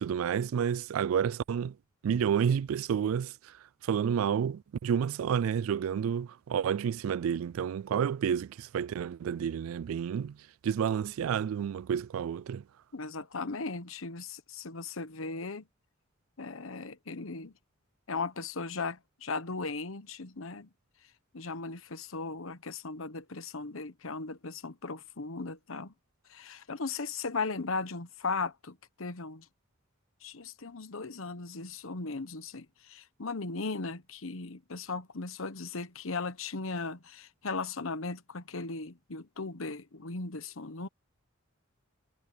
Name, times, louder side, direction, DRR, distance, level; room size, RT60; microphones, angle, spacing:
voice 1, 0.0-1.7 2.0-3.6 3.8-10.4 10.6-12.6, right 8 dB, 90° right, 0.3 m, -30 dB
voice 2, 12.9-15.7 16.4-17.5 18.1-20.7 21.3-25.9 26.3-29.5 30.2-40.9, left 4 dB, 75° left, 1.1 m, -37 dB
head